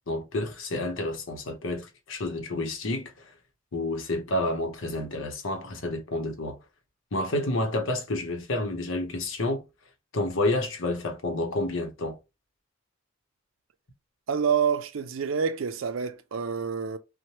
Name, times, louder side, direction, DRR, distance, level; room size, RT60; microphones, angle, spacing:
voice 1, 0.1-3.3 3.7-6.6 7.1-9.6 10.1-12.2, left 2 dB, 70° left, 0.8 m, -29 dB
voice 2, 14.3-17.0, right 6 dB, 75° right, 0.4 m, -27 dB
2.8 x 2.1 x 3.0 m
head